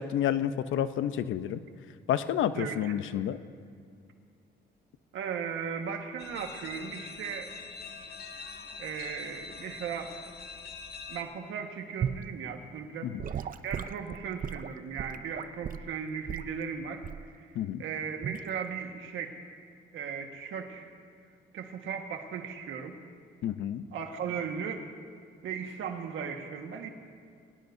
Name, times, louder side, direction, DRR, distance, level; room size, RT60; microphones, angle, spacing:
voice 1, 0.0-1.6 2.1-3.4 13.0-13.1 17.5-17.8 23.4-23.8, left 10 dB, 80° left, 12 dB, 0.7 m, -29 dB
voice 2, 2.5-2.9 5.1-7.5 8.8-10.1 11.1-19.4 19.9-20.9 21.5-23.0 23.9-24.8 25.4-26.9, right 7 dB, 80° right, 4 dB, 1.6 m, -37 dB
sound 1, 6.2-11.2, left 5 dB, 55° left, 1.2 m, -44 dB
Gurgling / Sink (filling or washing) / Liquid, 12.0-12.3 13.2-15.9 16.3-16.5 17.0-17.3 18.2-18.5, right 8 dB, 45° right, 0.5 m, -35 dB
23.0 x 18.5 x 2.7 m, 2.2 s
cardioid pair, 90°, 20 cm